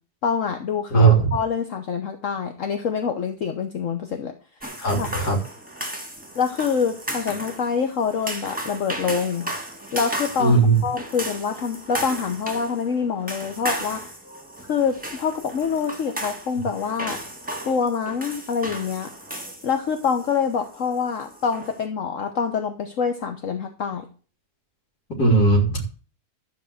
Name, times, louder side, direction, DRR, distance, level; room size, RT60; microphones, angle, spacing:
voice 1, 0.2-4.3 4.9-5.1 6.3-9.4 9.9-14.1 14.7-17.2 17.6-19.1 19.6-24.1, left 6 dB, 55° left, 5 dB, 1.4 m, -26 dB
voice 2, 0.9-1.3 4.8-5.4 10.4-10.8 25.2-25.8, right 3 dB, 80° left, 0 dB, 3.6 m, -17 dB
sound 1, 4.6-21.8, right 1 dB, 5° right, 1.9 m, -35 dB
13.0 x 5.1 x 7.8 m, 0.39 s
omnidirectional pair, 1.6 m